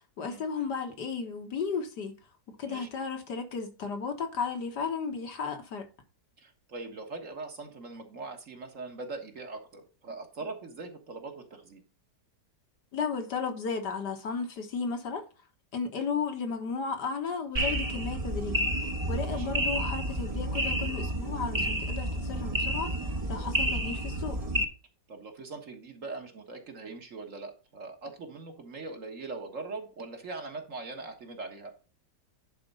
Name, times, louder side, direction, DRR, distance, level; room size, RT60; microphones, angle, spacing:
voice 1, 0.2-2.2 2.6-5.9 12.9-15.2 15.7-18.7 19.1-22.9 23.3-24.4, left 5 dB, 70° left, 2.0 m, -34 dB
voice 2, 6.4-11.8 19.2-19.5 25.1-31.7, right 3 dB, 50° right, 1.9 m, -41 dB
sound 1, 17.6-24.6, right 1 dB, 25° right, 1.1 m, -30 dB
10.5 x 4.3 x 5.5 m
omnidirectional pair, 1.9 m